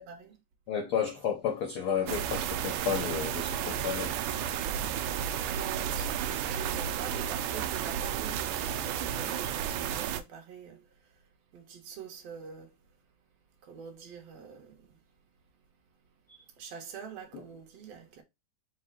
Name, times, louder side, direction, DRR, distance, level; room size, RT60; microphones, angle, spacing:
voice 1, 0.7-4.2, left 7 dB, 80° left, 1.2 m, -32 dB
sound 1, 2.1-10.2, right 9 dB, 80° right, 2.0 m, -32 dB
voice 2, 5.5-10.9 11.5-12.7 13.6-14.9 16.6-18.2, right 7 dB, 60° right, 1.9 m, -45 dB
4.9 x 2.3 x 4.3 m
omnidirectional pair, 3.6 m